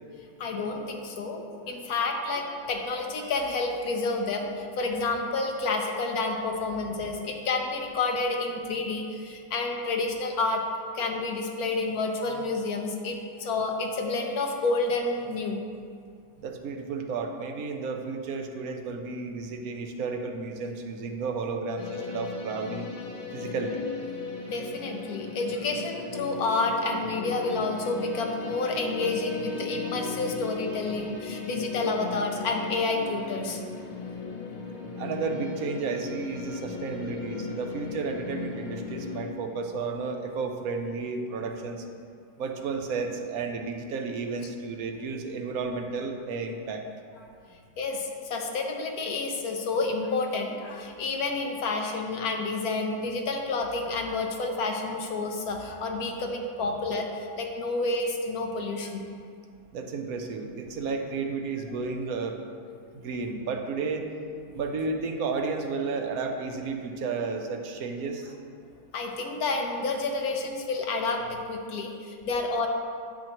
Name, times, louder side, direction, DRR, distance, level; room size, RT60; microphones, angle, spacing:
voice 1, 0.4-10.6 10.9-15.6 24.5-33.6 47.8-59.1 68.9-72.7, left 3 dB, 60° left, 2 dB, 1.3 m, -29 dB
voice 2, 16.4-22.9 23.3-23.8 35.0-41.8 42.4-46.8 59.7-62.4 62.9-64.1 64.5-68.3, right 4 dB, 65° right, 4 dB, 1.1 m, -32 dB
sound 1, 21.8-39.3, left 4 dB, 90° left, 0.3 m, -37 dB
9.8 x 7.4 x 3.0 m, 2.2 s
omnidirectional pair, 1.9 m